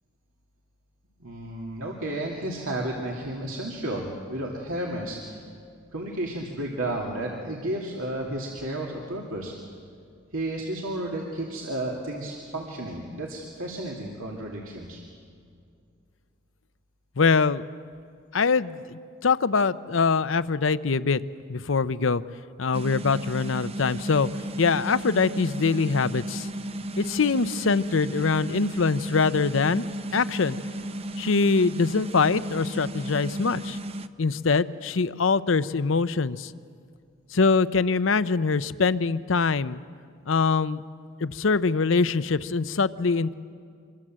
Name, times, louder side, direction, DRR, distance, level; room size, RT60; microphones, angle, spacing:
voice 1, 1.2-5.4 5.9-9.7 10.3-15.0, right 1 dB, 85° right, -2 dB, 2.6 m, -32 dB
voice 2, 17.2-17.6 18.3-21.2 21.5-22.2 22.6-24.3 24.6-26.5 27.0-29.8 30.1-30.6 31.2-33.8 34.2-36.5 37.3-39.8 40.3-40.8 41.2-43.3, left 4 dB, 70° left, 15 dB, 0.6 m, -23 dB
sound 1, 22.7-34.1, right 1 dB, 30° right, 0.6 m, -34 dB
26.5 x 22.5 x 7.6 m, 2.3 s
head